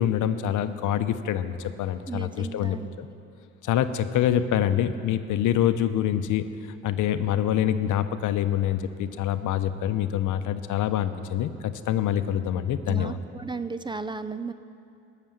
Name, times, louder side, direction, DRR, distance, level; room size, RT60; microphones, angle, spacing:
voice 1, 0.0-3.1 3.6-6.4 6.8-13.2, left 10 dB, 80° left, 11 dB, 0.8 m, -25 dB
voice 2, 2.1-2.9 12.9-14.5, right 4 dB, 15° right, 12 dB, 0.5 m, -34 dB
19.5 x 6.8 x 7.3 m, 2.6 s
cardioid pair, 90°, 30 cm